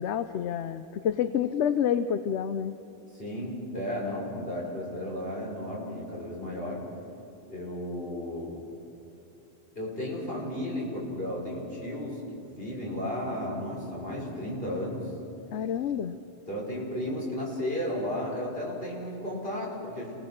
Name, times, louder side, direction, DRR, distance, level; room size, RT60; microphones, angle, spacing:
voice 1, 0.0-2.7 15.5-16.2, left 8 dB, 80° left, 10 dB, 1.0 m, -28 dB
voice 2, 3.1-6.8 7.5-8.6 9.8-15.1 16.5-20.2, left 1 dB, 55° left, -3 dB, 5.9 m, -34 dB
28.5 x 18.5 x 6.5 m, 2.9 s
omnidirectional pair, 1.2 m